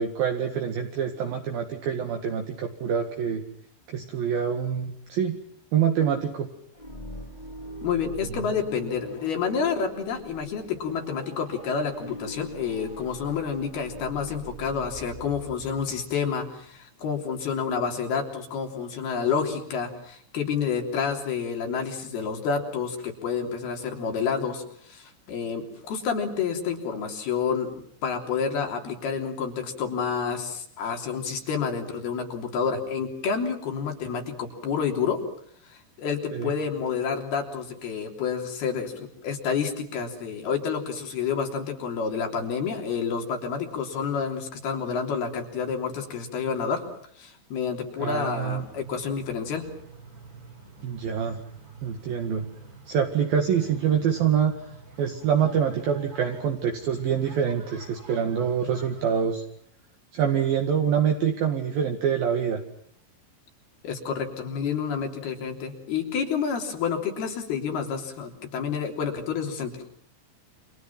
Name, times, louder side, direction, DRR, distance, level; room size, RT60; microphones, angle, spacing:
voice 1, 0.0-3.4 3.9-5.4 5.7-6.5 8.2-8.5 36.3-36.5 48.0-48.6 50.8-51.4 51.8-52.4 52.9-54.5 55.0-59.4 60.1-62.6, right 8 dB, 60° right, 3 dB, 3.3 m, -25 dB
sound 1, 6.7-16.5, equal, 10° left, 2.9 m, -43 dB
voice 2, 7.8-35.2 35.7-46.8 47.2-49.6 63.8-69.8, left 6 dB, 60° left, 3 dB, 5.1 m, -29 dB
sound 2, 48.3-59.2, right 4 dB, 20° right, 3.6 m, -48 dB
30.0 x 27.0 x 6.0 m, 0.63 s
omnidirectional pair, 5.3 m